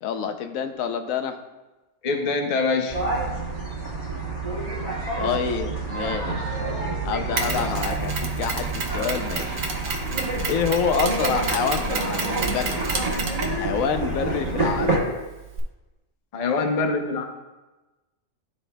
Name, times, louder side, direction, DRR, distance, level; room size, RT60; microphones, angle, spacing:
voice 1, 0.0-1.4 5.2-6.6 7.0-9.6 10.5-12.8 13.5-15.0, left 7 dB, 90° left, 7 dB, 1.0 m, -27 dB
voice 2, 2.0-3.0 16.3-17.2, left 3 dB, 40° left, 4 dB, 0.6 m, -24 dB
sound 1, 2.9-15.0, right 2 dB, 30° right, 1.5 m, -28 dB
Mechanisms, 7.4-15.6, right 4 dB, 80° right, 1.3 m, -31 dB
12.0 x 4.3 x 2.2 m, 1.1 s
omnidirectional pair, 1.4 m